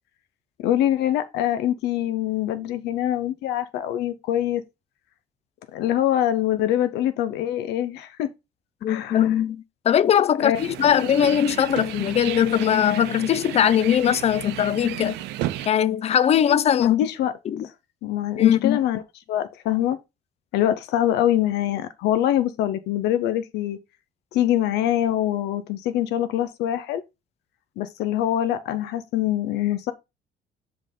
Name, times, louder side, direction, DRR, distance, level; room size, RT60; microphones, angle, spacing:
voice 1, 0.6-4.6 5.7-8.3 8.9-9.2 10.4-10.6 16.8-17.3 18.0-19.0 19.3-20.0 20.5-23.8 24.3-27.0 27.8-29.9, left 12 dB, 80° left, 0.7 m, -24 dB
voice 2, 8.8-15.2 15.6-17.0 17.5-17.7 18.4-18.8, left 9 dB, 40° left, 0.5 m, -20 dB
sound 1, 10.5-15.7, right 14 dB, 90° right, 0.6 m, -33 dB
5.3 x 4.0 x 5.3 m
cardioid pair, 110°, 17 cm